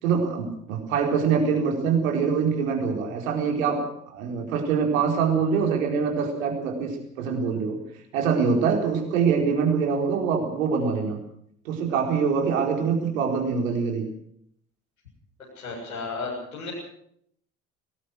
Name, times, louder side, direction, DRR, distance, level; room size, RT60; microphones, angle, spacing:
voice 1, 0.0-3.8 4.1-7.8 8.1-11.2 11.6-14.1, right 6 dB, 75° right, 2 dB, 4.4 m, -24 dB
voice 2, 15.5-16.7, left 4 dB, 85° left, -6 dB, 7.5 m, -33 dB
22.0 x 19.0 x 6.5 m, 0.68 s
figure-of-eight pair, 55°, 41 cm